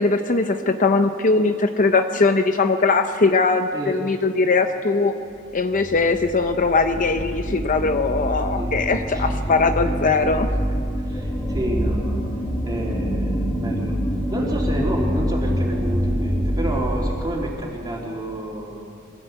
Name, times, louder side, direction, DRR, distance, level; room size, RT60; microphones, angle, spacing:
voice 1, 0.0-5.1 5.5-10.5, left 3 dB, 40° left, 7 dB, 0.7 m, -20 dB
voice 2, 3.7-4.0 8.6-9.2 9.8-9.9 11.1-12.2 12.6-14.0 14.3-18.8, right 1 dB, 20° right, -2 dB, 3.4 m, -29 dB
sound 1, 5.5-17.1, equal, 10° left, 2.9 m, -25 dB
22.5 x 16.0 x 8.1 m, 2.4 s
head